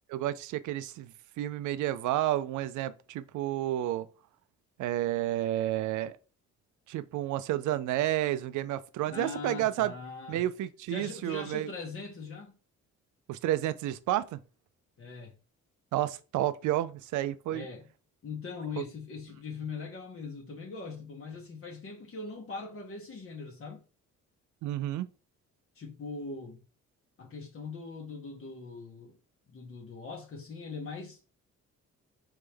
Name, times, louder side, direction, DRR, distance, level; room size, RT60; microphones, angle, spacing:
voice 1, 0.1-4.1 4.8-6.2 6.9-9.9 10.3-11.7 13.3-14.4 15.9-17.7 18.8-18.9 24.6-25.1, right 13 dB, 75° right, 0.5 m, -31 dB
voice 2, 9.1-10.4 10.9-12.6 15.0-15.4 17.5-17.9 18.2-23.8 25.7-26.6 27.2-29.2 29.5-31.3, left 4 dB, 45° left, 1.1 m, -41 dB
3.5 x 3.2 x 3.3 m
cardioid pair, 90°, 30 cm